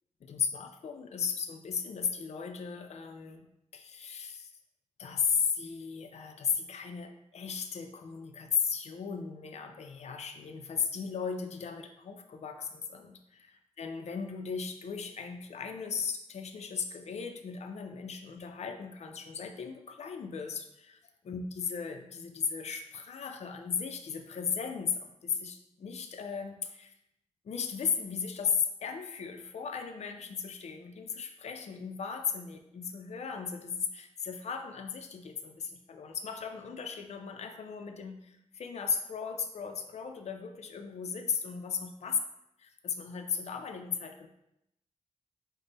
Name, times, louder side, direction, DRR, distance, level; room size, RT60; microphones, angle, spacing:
voice 1, 0.2-3.5 3.7-4.5 5.0-21.0 21.2-26.9 27.5-38.2 38.5-42.2 42.8-44.3, left 6 dB, 65° left, 5 dB, 0.4 m, -36 dB
5.1 x 2.1 x 3.9 m, 0.82 s
wide cardioid pair, 95°, 12 cm